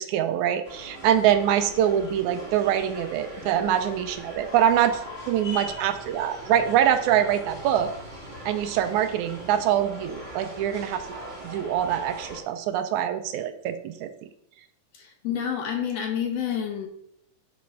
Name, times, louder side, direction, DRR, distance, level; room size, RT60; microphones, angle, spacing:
voice 1, 0.0-7.9 8.5-11.0 11.4-14.1, right 10 dB, 80° right, 9 dB, 2.0 m, -24 dB
sound 1, 0.6-12.4, equal, 20° right, 2.3 m, -40 dB
voice 2, 14.9-16.9, left 8 dB, 65° left, 3 dB, 1.9 m, -29 dB
6.8 x 5.3 x 4.6 m, 0.73 s
omnidirectional pair, 3.5 m